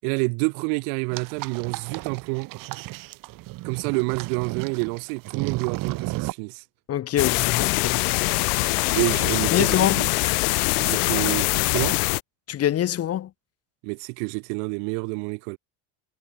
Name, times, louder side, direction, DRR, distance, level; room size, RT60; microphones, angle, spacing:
voice 1, 0.0-2.5 3.6-6.6 9.0-10.1 10.8-12.0 13.8-15.6, right 40 dB or more, 70° right, 6.4 m, -28 dB
sound 1, 1.1-6.3, right 19 dB, 45° right, 2.2 m, -33 dB
voice 2, 6.9-8.4 8.8-9.0 9.5-10.0 12.5-13.3, left 11 dB, 30° left, 4.1 m, -25 dB
sound 2, 7.2-12.2, left 31 dB, 80° left, 1.7 m, -23 dB
cardioid pair, 165°, 44 cm